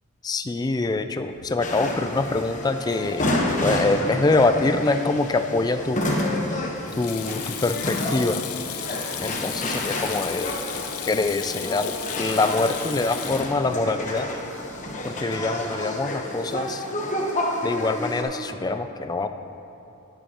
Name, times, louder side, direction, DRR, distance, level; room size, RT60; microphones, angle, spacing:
voice 1, 0.2-3.3 3.6-6.0 7.0-8.4 9.2-10.6 11.1-14.3 15.0-16.9 17.6-19.3, left 3 dB, 20° left, 8 dB, 0.3 m, -24 dB
Sink (filling or washing), 1.3-15.0, left 9 dB, 80° left, 0.7 m, -37 dB
sound 1, 1.6-18.2, left 1 dB, 35° left, 1.0 m, -29 dB
11.0 x 10.5 x 3.0 m, 2.8 s
head